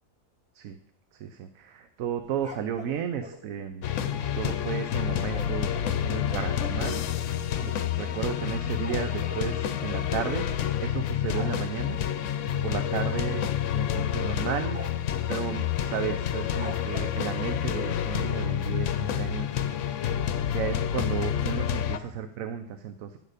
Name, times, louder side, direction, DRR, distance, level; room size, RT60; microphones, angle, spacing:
voice 1, 1.2-3.8 4.2-5.7 6.0-7.0 7.6-10.5 10.8-12.0 12.6-14.8 15.3-19.5 20.5-23.2, right 8 dB, 85° right, 8 dB, 1.1 m, -33 dB
sound 1, 2.4-3.4 5.3-6.6 7.3-7.4 7.6-7.8 8.1-9.5 10.6-10.9 11.3-11.6 13.0-13.2 13.6-13.7 14.2-14.3 14.7-15.2 16.6-17.2, right 1 dB, 5° right, 0.9 m, -43 dB
sound 2, 3.8-22.0, left 10 dB, 70° left, 1.0 m, -29 dB
11.0 x 6.5 x 4.9 m, 0.70 s
omnidirectional pair, 1.4 m